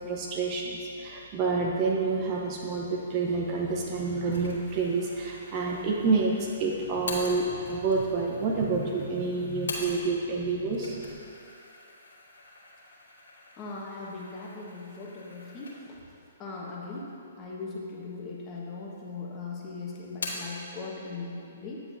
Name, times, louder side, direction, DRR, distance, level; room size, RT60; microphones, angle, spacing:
voice 1, 0.0-11.0, right 4 dB, 30° right, -1 dB, 0.8 m, -28 dB
sound 1, 4.3-10.3 10.6-16.1 16.5-16.6 17.4-18.1 18.4-19.2 19.5-20.6, left 2 dB, 75° left, 1.7 m, -43 dB
voice 2, 13.6-16.0 16.4-17.1 17.4-21.8, left 3 dB, 25° left, -4 dB, 1.3 m, -39 dB
9.5 x 7.5 x 2.7 m, 2.7 s
figure-of-eight pair, 125°, 0 cm